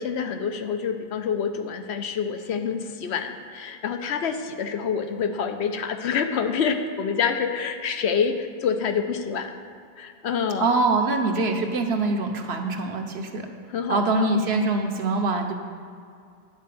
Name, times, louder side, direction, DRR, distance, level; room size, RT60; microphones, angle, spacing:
voice 1, 0.0-9.6 10.0-10.7 13.7-14.3, left 6 dB, 85° left, 7 dB, 1.0 m, -27 dB
voice 2, 10.6-13.5 13.9-15.5, right 3 dB, 75° right, 4 dB, 1.1 m, -24 dB
9.5 x 4.6 x 7.5 m, 2.3 s
omnidirectional pair, 1.1 m